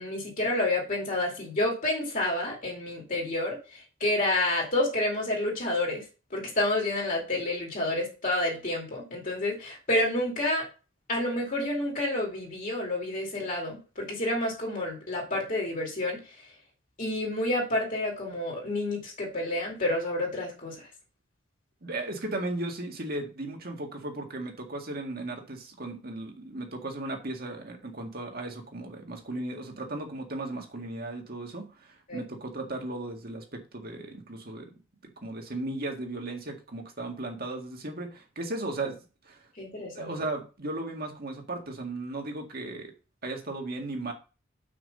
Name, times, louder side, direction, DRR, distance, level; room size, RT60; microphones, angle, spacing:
voice 1, 0.0-3.6 4.0-6.0 6.3-10.6 11.1-16.2 17.0-20.7 32.1-32.2 39.6-40.1, left 1 dB, 45° left, -1 dB, 2.5 m, -29 dB
voice 2, 21.8-34.7 35.2-39.0 39.2-39.5 39.9-42.9 43.2-44.1, right 2 dB, 50° right, 3 dB, 1.9 m, -36 dB
6.1 x 5.0 x 6.6 m, 0.33 s
head